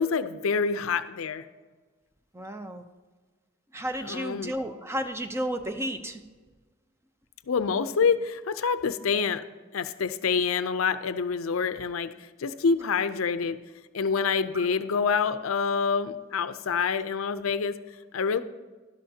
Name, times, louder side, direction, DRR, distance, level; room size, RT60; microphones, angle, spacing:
voice 1, 0.0-1.5 4.0-4.5 7.5-9.4 9.7-13.6 13.9-17.8 18.1-18.4, left 5 dB, 85° left, 12 dB, 0.5 m, -27 dB
voice 2, 2.3-2.8 3.7-6.2 14.5-14.7, equal, 15° right, 7 dB, 0.6 m, -32 dB
12.0 x 11.5 x 2.8 m, 1.3 s
head